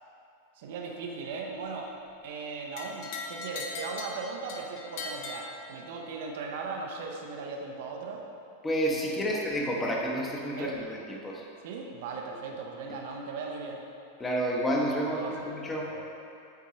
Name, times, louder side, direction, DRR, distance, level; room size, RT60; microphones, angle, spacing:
voice 1, 0.6-1.9 2.2-8.2 9.3-9.4 10.6-10.8 11.6-13.8 15.0-15.5 15.8-16.0, right 4 dB, 55° right, 1 dB, 0.6 m, -38 dB
sound 1, 2.8-6.1, left 4 dB, 50° left, 0.7 m, -40 dB
voice 2, 8.6-11.4 14.2-15.9, equal, 15° left, -2 dB, 0.9 m, -30 dB
8.0 x 4.6 x 3.0 m, 2.6 s
figure-of-eight pair, 90°, 0 cm